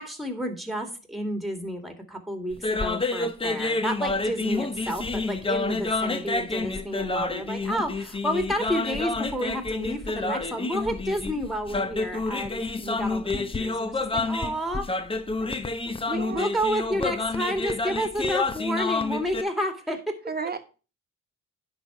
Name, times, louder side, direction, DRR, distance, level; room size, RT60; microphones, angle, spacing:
voice 1, 0.0-14.9 15.4-15.5 16.1-20.2, equal, ahead, 6 dB, 2.1 m, -30 dB
sound 1, 2.5-19.4, left 3 dB, 20° left, 0.8 m, -29 dB
voice 2, 16.1-16.5 20.3-20.6, right 5 dB, 30° right, 7 dB, 1.3 m, -33 dB
9.9 x 4.0 x 5.9 m, 0.34 s
cardioid pair, 90°, 30 cm